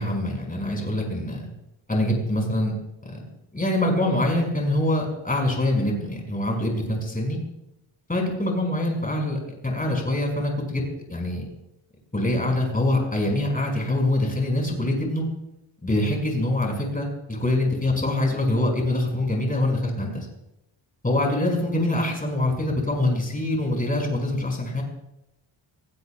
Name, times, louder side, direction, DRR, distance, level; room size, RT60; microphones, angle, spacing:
voice 1, 0.0-1.5 1.9-2.7 3.1-3.2 3.5-7.4 8.1-10.8 11.1-11.4 12.1-15.2 15.8-20.3 21.0-24.8, left 1 dB, 15° left, 0 dB, 5.7 m, -24 dB
26.5 x 17.0 x 2.3 m, 0.86 s
cardioid pair, 80°, 49 cm